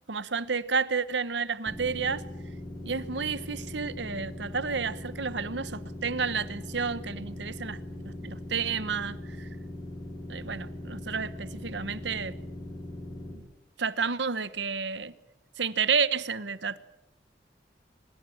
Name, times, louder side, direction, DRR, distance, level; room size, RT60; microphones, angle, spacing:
voice 1, 0.1-2.2 2.8-7.8 8.2-9.5 10.3-12.4 13.8-15.1 15.6-16.8, right 5 dB, 75° right, 1.1 m, -30 dB
sound 1, 1.7-13.3, left 1 dB, 20° left, 7.1 m, -40 dB
24.5 x 22.0 x 8.6 m
head